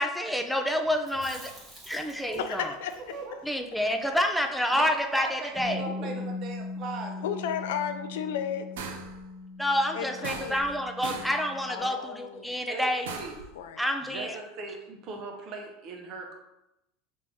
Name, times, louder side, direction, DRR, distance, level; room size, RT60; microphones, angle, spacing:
voice 1, 0.0-1.5 1.9-2.7 3.4-5.8 9.6-13.1 13.8-14.4, equal, ahead, 4 dB, 0.4 m, -28 dB
Chewing mastication, 1.0-5.2 5.4-5.5 5.8-6.6, right 1 dB, 20° right, 1.3 m, -49 dB
voice 2, 2.4-3.0 7.2-8.7 9.9-10.6 11.7-12.6 13.6-13.8, left 8 dB, 85° left, 8 dB, 0.3 m, -33 dB
voice 3, 4.7-7.5 12.7-13.4 14.0-16.3, right 3 dB, 50° right, 2 dB, 0.8 m, -39 dB
Bass guitar, 5.6-11.8, left 3 dB, 30° left, 1.1 m, -40 dB
sound 1, 8.8-9.2 10.2-10.8 11.0-11.4 13.1-13.5, right 5 dB, 85° right, 0.4 m, -38 dB
3.3 x 2.6 x 3.4 m, 0.90 s
supercardioid pair, 115°, 0 cm